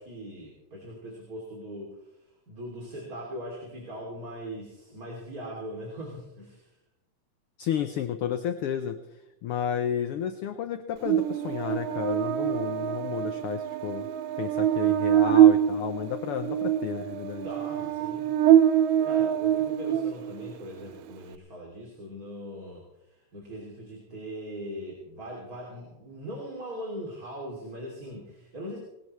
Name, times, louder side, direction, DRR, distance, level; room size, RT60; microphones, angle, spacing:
voice 1, 0.0-6.8 17.4-18.3 19.0-28.8, equal, 30° right, -2 dB, 3.1 m, -40 dB
voice 2, 7.6-9.0 9.4-14.1 14.4-17.5, left 9 dB, 75° left, 9 dB, 1.4 m, -32 dB
Buzz, 11.1-20.5, right 11 dB, 90° right, 2.1 m, -24 dB
20.0 x 18.0 x 3.2 m, 0.91 s
omnidirectional pair, 3.4 m